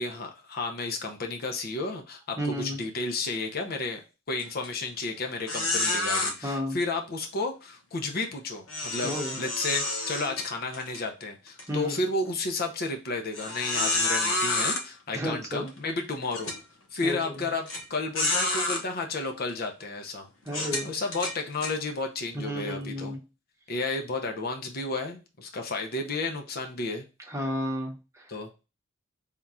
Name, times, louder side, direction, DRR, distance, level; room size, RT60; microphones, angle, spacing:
voice 1, 0.0-4.0 4.3-9.1 9.4-16.6 16.9-20.3 20.9-23.2 23.7-27.1 28.3-28.6, left 3 dB, 50° left, 4 dB, 0.6 m, -32 dB
voice 2, 2.4-2.8 6.4-6.8 9.0-9.4 11.7-12.0 15.1-15.7 17.0-17.5 20.5-21.0 22.3-23.2 27.3-28.3, equal, 15° right, -1 dB, 0.9 m, -32 dB
sound 1, 4.4-4.7 5.0-5.1 5.5-6.3 8.7-11.0 11.5-11.6 12.3-12.4 13.3-14.8 15.7-15.8 16.3-16.6 17.7-17.8 18.2-18.8 19.5-19.7 20.5-21.7, left 2 dB, 75° left, 1.0 m, -28 dB
3.6 x 2.3 x 4.1 m, 0.29 s
head